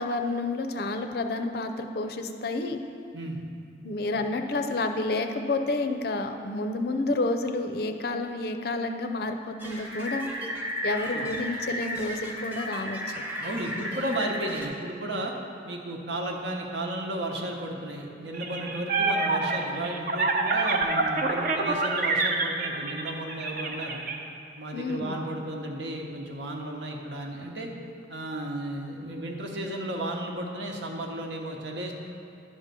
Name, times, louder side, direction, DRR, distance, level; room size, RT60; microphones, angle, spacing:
voice 1, 0.0-2.8 3.8-10.3 10.8-13.2 24.7-25.2, left 2 dB, 55° left, 6 dB, 0.5 m, -30 dB
sound 1, 9.6-14.7, equal, 10° right, 0.8 m, -34 dB
voice 2, 13.4-15.3 15.6-24.0 24.6-27.7 28.1-31.9, right 1 dB, 75° right, 1 dB, 1.0 m, -34 dB
sound 2, 18.3-24.1, right 3 dB, 50° right, 0.6 m, -26 dB
10.5 x 3.7 x 6.8 m, 2.6 s
head